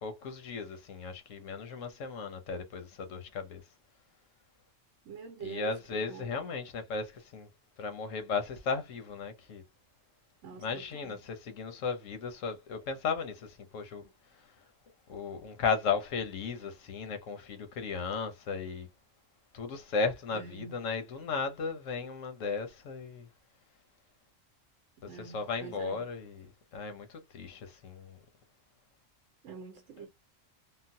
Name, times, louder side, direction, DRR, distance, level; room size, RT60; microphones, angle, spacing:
voice 1, 0.0-3.6 5.4-7.5 7.8-9.6 10.6-14.1 15.1-18.9 19.5-23.3 25.0-28.2, left 5 dB, 80° left, 1.2 m, -35 dB
voice 2, 5.0-6.3 10.4-11.2 20.3-20.8 25.1-26.0 29.4-30.1, right 7 dB, 70° right, 1.0 m, -45 dB
3.7 x 2.1 x 2.6 m
omnidirectional pair, 1.3 m